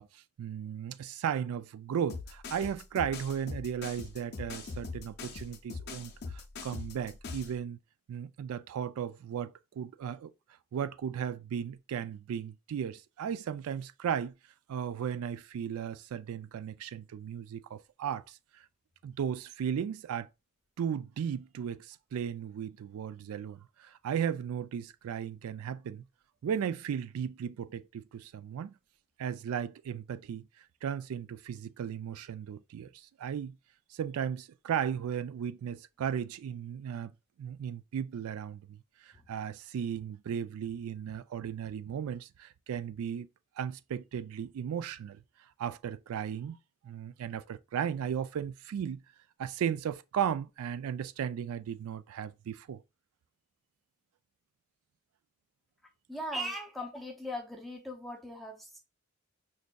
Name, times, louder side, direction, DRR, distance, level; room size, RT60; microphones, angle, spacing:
voice 1, 0.0-7.8 8.1-10.3 10.7-14.3 14.7-18.4 19.0-20.3 20.8-26.0 26.4-28.7 29.2-30.5 30.8-33.5 33.9-37.1 37.4-43.3 43.6-45.2 45.6-46.6 46.8-49.0 49.4-52.8, right 8 dB, 75° right, 0.3 m, -36 dB
sound 1, 2.1-7.5, left 4 dB, 50° left, 0.5 m, -41 dB
voice 2, 56.1-58.8, equal, ahead, 0.5 m, -39 dB
5.0 x 2.5 x 2.2 m
head